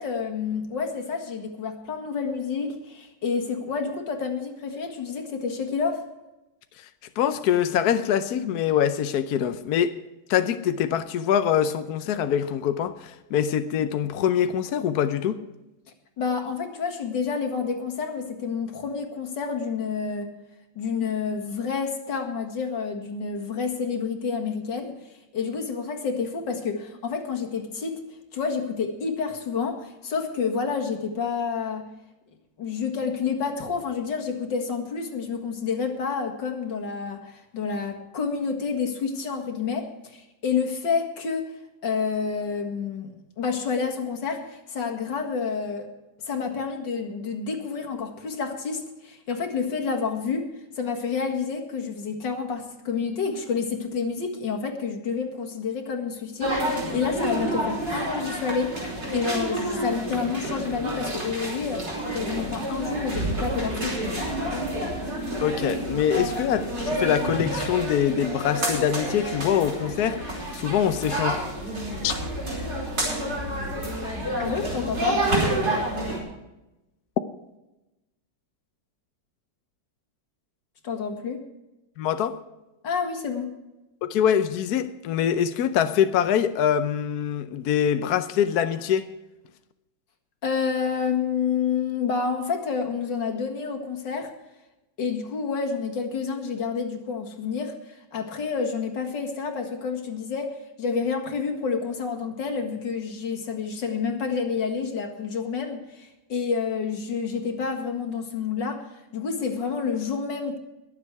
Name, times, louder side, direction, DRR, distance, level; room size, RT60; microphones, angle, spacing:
voice 1, 0.0-6.0 16.2-20.3 20.8-25.0 25.3-28.0 28.3-31.9 32.6-41.5 41.8-43.1 43.4-45.9 46.3-50.5 50.8-58.7 59.1-64.0 74.4-75.2 80.8-81.4 82.8-83.5 90.4-94.3 95.0-108.8 109.1-110.6, left 5 dB, 85° left, 2.4 m, -29 dB
voice 2, 7.2-10.0 10.3-15.4 65.4-71.4 72.0-72.1 82.0-82.4 84.0-89.1, left 9 dB, 70° left, 1.1 m, -24 dB
sound 1, 56.4-76.2, right 1 dB, 60° right, 5.3 m, -29 dB
22.0 x 7.5 x 4.7 m
omnidirectional pair, 1.9 m